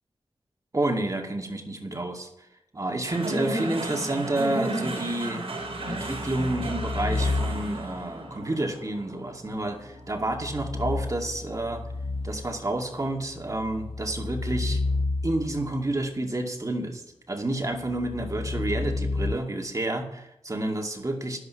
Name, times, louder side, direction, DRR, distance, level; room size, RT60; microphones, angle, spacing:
voice 1, 0.7-2.3 2.7-5.5 5.9-11.8 12.2-14.8 15.2-17.0 17.3-21.4, right 2 dB, 35° right, 2 dB, 2.3 m, -29 dB
sound 1, 3.1-11.5, right 1 dB, 80° right, 4.6 m, -34 dB
sound 2, 5.7-8.0 10.1-12.7 13.3-15.8 17.8-19.3, left 3 dB, 70° left, 1.0 m, -31 dB
11.5 x 11.0 x 5.8 m, 0.83 s
cardioid pair, 60°, 10 cm